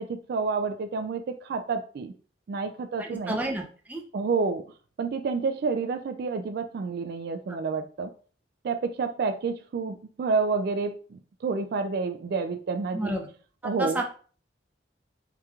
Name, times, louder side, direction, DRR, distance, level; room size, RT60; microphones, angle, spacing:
voice 1, 0.0-2.1 2.5-3.4 4.1-4.6 5.0-8.1 8.6-13.2 13.6-14.0, right 4 dB, 55° right, 7 dB, 0.3 m, -29 dB
voice 2, 3.0-4.0 12.9-13.3 13.8-14.0, right 1 dB, 10° right, 0 dB, 0.6 m, -30 dB
4.8 x 2.8 x 2.3 m, 0.41 s
head